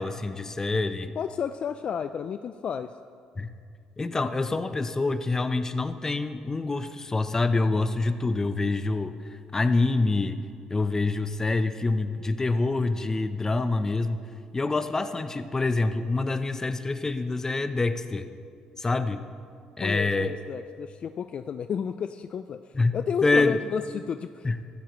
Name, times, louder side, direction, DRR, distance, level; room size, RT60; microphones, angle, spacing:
voice 1, 0.0-1.1 3.4-3.5 4.0-9.2 9.5-10.4 10.7-14.2 14.5-18.3 18.8-19.2 19.8-20.3 22.7-23.0 23.2-23.6 24.4-24.5, left 3 dB, 25° left, 10 dB, 0.7 m, -26 dB
voice 2, 1.2-2.9 19.8-24.6, left 7 dB, 50° left, 10 dB, 0.3 m, -32 dB
14.5 x 13.0 x 3.1 m, 2.3 s
supercardioid pair, 70°, 2 cm